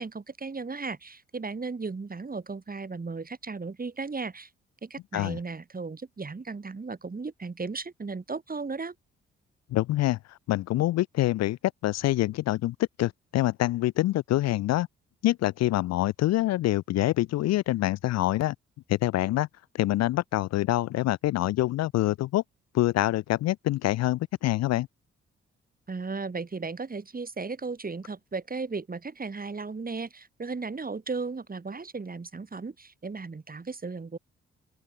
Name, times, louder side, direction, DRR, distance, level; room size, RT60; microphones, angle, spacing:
voice 1, 0.0-4.5 4.8-8.9 25.9-34.2, right 4 dB, 30° right, 2.6 m, -35 dB
voice 2, 9.7-14.9 15.2-18.6 18.9-19.5 19.7-22.4 22.7-24.9, left 15 dB, 60° left, 0.6 m, -26 dB
open air
hypercardioid pair, 40°, 30 cm